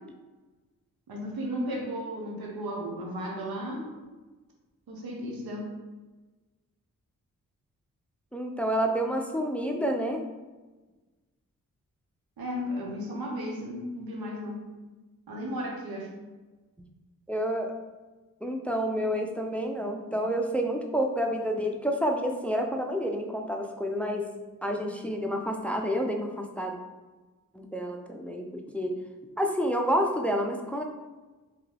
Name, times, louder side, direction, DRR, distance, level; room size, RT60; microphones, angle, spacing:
voice 1, 1.1-3.9 4.9-5.8 12.4-14.7 15.3-16.2, equal, 85° right, -1 dB, 0.9 m, -34 dB
voice 2, 8.3-10.2 17.3-17.8 18.4-24.3 24.6-26.8 27.5-28.9 29.4-30.8, equal, 5° left, 3 dB, 0.5 m, -29 dB
3.5 x 3.0 x 3.3 m, 1.2 s
cardioid pair, 50°, 35 cm